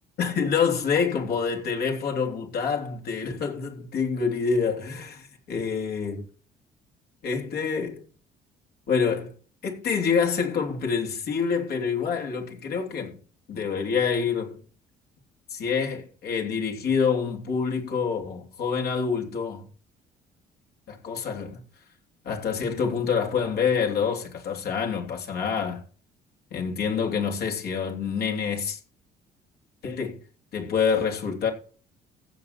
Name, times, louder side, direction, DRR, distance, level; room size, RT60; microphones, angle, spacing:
voice 1, 0.2-6.2 7.2-8.0 8.9-9.3 9.6-13.2 13.5-14.6 15.5-19.7 20.9-21.6 22.2-25.8 26.5-28.8 29.8-30.2 30.5-31.5, left 6 dB, 70° left, 3.3 m, -27 dB
15.5 x 6.9 x 4.3 m
cardioid pair, 110°, 17 cm